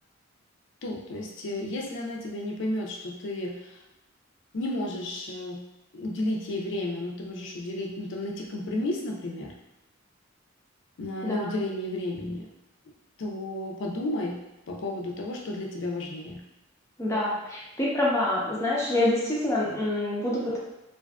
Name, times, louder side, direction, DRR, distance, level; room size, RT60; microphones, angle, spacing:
voice 1, 0.8-3.8 4.5-5.6 5.9-9.5 11.0-12.5 13.2-14.4 14.7-16.4, left 1 dB, 65° left, 0 dB, 0.5 m, -32 dB
voice 2, 11.2-11.5 17.0-20.6, left 1 dB, 15° left, -5 dB, 0.6 m, -26 dB
2.5 x 2.3 x 2.3 m, 0.94 s
head